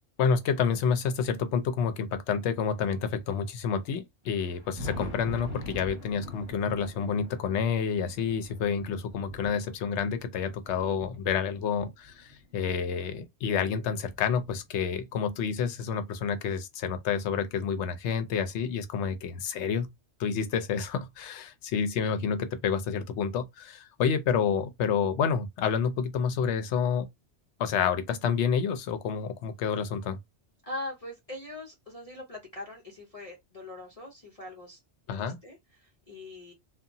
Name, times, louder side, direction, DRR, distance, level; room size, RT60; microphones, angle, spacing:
voice 1, 0.2-19.9 20.2-27.1 27.6-30.2 35.1-35.4, left 6 dB, 80° left, 0.9 m, -29 dB
Thunder, 4.2-12.8 13.5-15.2 16.3-16.4 17.0-17.1 18.9-19.0 20.4-20.5 22.1-22.2, left 1 dB, 25° right, 1.5 m, -44 dB
voice 2, 30.6-34.8 35.2-36.5, left 2 dB, 35° left, 0.8 m, -42 dB
2.8 x 2.3 x 2.6 m
omnidirectional pair, 1.2 m